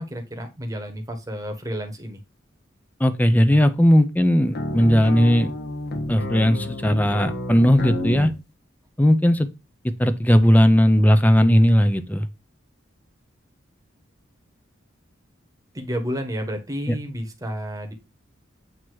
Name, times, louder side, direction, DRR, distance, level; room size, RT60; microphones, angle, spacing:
voice 1, 0.0-2.2 15.7-17.9, equal, 20° right, 1.2 m, -31 dB
voice 2, 3.0-5.5 6.1-8.3 9.0-9.5 10.0-12.3 16.9-17.0, equal, 10° left, 0.6 m, -17 dB
sound 1, 4.5-8.4, left 1 dB, 55° left, 1.2 m, -30 dB
7.9 x 2.9 x 4.6 m
head